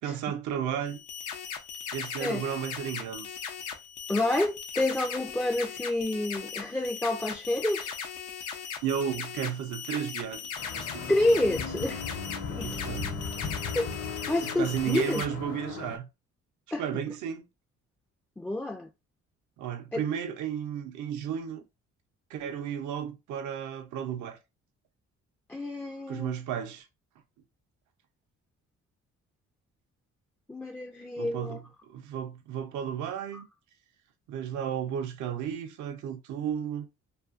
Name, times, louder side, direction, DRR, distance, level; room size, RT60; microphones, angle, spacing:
voice 1, 0.0-1.0 1.9-3.3 8.8-11.1 12.6-13.3 14.4-16.1 16.8-17.4 19.6-21.6 22.3-24.4 26.1-26.9 31.2-31.6 31.9-33.5 34.3-36.9, right 9 dB, 75° right, 0.6 m, -33 dB
sound 1, 0.9-15.3, left 7 dB, 85° left, 0.6 m, -38 dB
voice 2, 4.1-7.9 11.1-12.0 12.5-12.9 13.7-13.9 14.3-15.2 16.7-16.8 18.4-18.9 19.9-20.0 25.5-26.3 30.5-31.6 33.3-33.4, left 1 dB, 5° left, 0.3 m, -28 dB
sound 2, 10.6-16.0, left 5 dB, 55° left, 0.8 m, -37 dB
2.6 x 2.4 x 2.4 m
cardioid pair, 90°, 30 cm